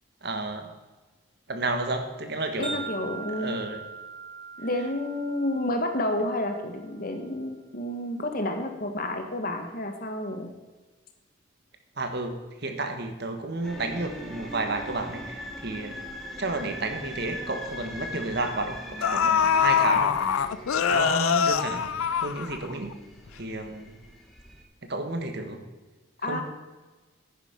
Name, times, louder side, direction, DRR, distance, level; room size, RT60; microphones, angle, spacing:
voice 1, 0.2-0.7 1.5-2.9 3.4-3.8 12.0-16.0 16.4-20.6 20.9-21.9 22.2-22.9 23.4-23.9 24.8-25.6 26.3-26.4, right 2 dB, 50° right, 6 dB, 1.4 m, -31 dB
voice 2, 2.6-3.6 4.6-10.5 26.2-26.4, left 1 dB, 40° left, 5 dB, 1.4 m, -30 dB
Wind chime, 2.6-6.9, right 4 dB, 25° right, 2.2 m, -41 dB
sound 1, 13.6-24.6, left 1 dB, ahead, 1.7 m, -41 dB
sound 2, 17.5-17.6 18.5-18.6 19.0-22.9 23.3-23.4, left 7 dB, 85° left, 0.5 m, -24 dB
10.0 x 10.0 x 5.2 m, 1.3 s
head